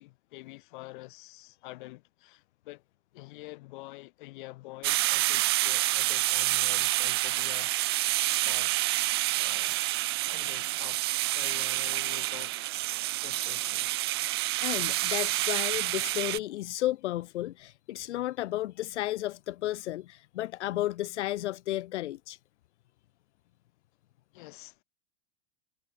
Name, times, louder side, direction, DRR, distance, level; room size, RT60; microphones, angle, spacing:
voice 1, 0.0-2.8 3.1-7.7 8.2-9.9 10.2-12.7 13.2-14.0 24.3-24.8, left 20 dB, 45° left, 4.8 m, -47 dB
sound 1, 4.8-16.4, right 18 dB, 25° right, 0.4 m, -28 dB
voice 2, 14.6-22.4, left 15 dB, 80° left, 0.9 m, -33 dB
supercardioid pair, 175°, 34 cm